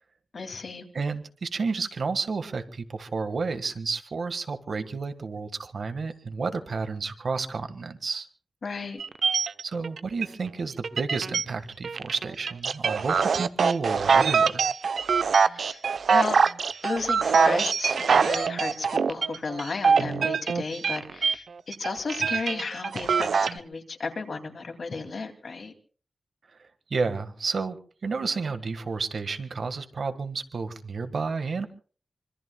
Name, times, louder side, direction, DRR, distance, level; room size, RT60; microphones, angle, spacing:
voice 1, 0.3-0.9 8.6-9.0 15.5-15.8 16.1-16.4 16.8-25.7, left 4 dB, 55° left, 5 dB, 2.5 m, -33 dB
voice 2, 0.9-8.3 9.6-14.6 26.6-31.7, right 4 dB, 55° right, 9 dB, 1.6 m, -31 dB
sound 1, 9.0-10.5 10.8-11.4 11.8-21.3 21.7-23.6, right 5 dB, 80° right, 0.7 m, -23 dB
25.5 x 25.0 x 2.3 m, 0.40 s
wide cardioid pair, 180°, 0 cm